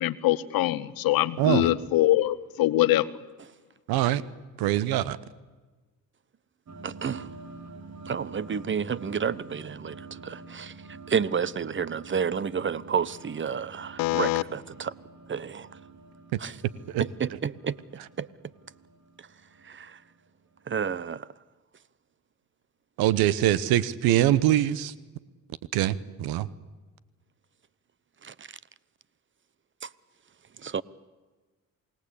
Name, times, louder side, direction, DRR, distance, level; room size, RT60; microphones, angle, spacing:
voice 1, 0.0-3.1 14.0-14.4, left 16 dB, 75° left, 1.1 m, -23 dB
voice 2, 1.4-1.7 3.9-4.2 4.6-5.2 23.0-24.9 25.7-26.5, right 13 dB, 80° right, 1.1 m, -23 dB
sound 1, 6.7-20.6, right 3 dB, 50° right, 3.7 m, -47 dB
voice 3, 6.8-7.3 8.1-10.7 11.1-14.9 15.3-15.7 16.4-16.6 17.0-17.8 18.2-18.3 19.6-20.0 20.7-21.3 28.2-28.5 29.8-29.9 30.6-30.8, right 7 dB, 35° right, 0.9 m, -30 dB
28.0 x 18.5 x 8.5 m
supercardioid pair, 65°, 36 cm